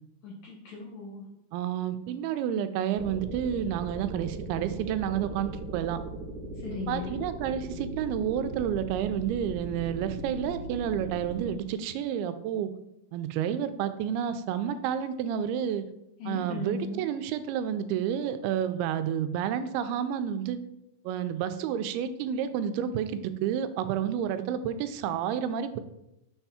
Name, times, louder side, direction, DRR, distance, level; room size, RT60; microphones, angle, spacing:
voice 1, 0.2-1.3 6.6-7.2 16.2-17.0, left 3 dB, 70° left, -2 dB, 1.8 m, -37 dB
voice 2, 1.5-6.0 6.9-12.7 13.1-15.8 16.3-20.6 21.1-25.8, right 9 dB, 90° right, 10 dB, 2.5 m, -30 dB
sound 1, 2.9-11.6, right 3 dB, 70° right, 2.1 m, -39 dB
6.5 x 3.5 x 5.6 m, 0.86 s
omnidirectional pair, 4.4 m